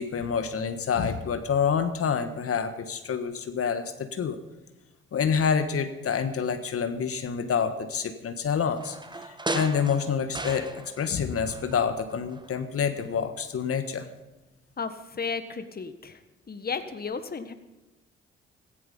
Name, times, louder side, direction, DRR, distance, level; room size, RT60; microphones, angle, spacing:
voice 1, 0.0-4.4 5.1-14.1, left 6 dB, 50° left, 9 dB, 1.5 m, -27 dB
sound 1, 8.8-11.2 11.5-12.6 12.9-13.0, right 2 dB, 15° right, 1.4 m, -36 dB
voice 2, 14.8-16.2 16.5-17.5, left 5 dB, 30° left, 10 dB, 1.5 m, -34 dB
16.5 x 15.0 x 5.3 m, 1.1 s
hypercardioid pair, 45°, 30 cm